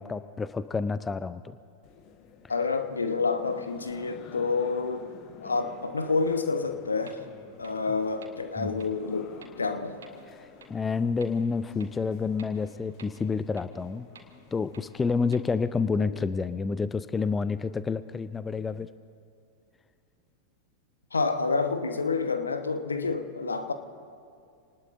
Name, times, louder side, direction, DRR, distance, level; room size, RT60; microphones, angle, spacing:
voice 1, 0.0-1.6 8.6-8.7 10.4-14.1 14.5-18.9, left 4 dB, 15° left, 14 dB, 0.4 m, -29 dB
sound 1, 1.8-15.7, left 6 dB, 40° left, 1.4 m, -51 dB
voice 2, 2.5-5.1 5.4-7.2 7.6-10.0 16.0-16.2 21.1-23.7, left 4 dB, 75° left, 8 dB, 1.1 m, -28 dB
sound 2, 7.1-7.2 7.6-7.7 8.2-8.3 8.8-8.9 9.4-9.5 10.0-10.1 10.6-10.7 11.2-11.3 11.8-11.9 12.4-12.5 13.0-13.1 13.6-13.7 14.1-14.2 14.7-14.8 15.3-15.4, right 6 dB, 65° right, 2.1 m, -50 dB
28.0 x 19.5 x 2.6 m, 2.4 s
figure-of-eight pair, 90°, 0 cm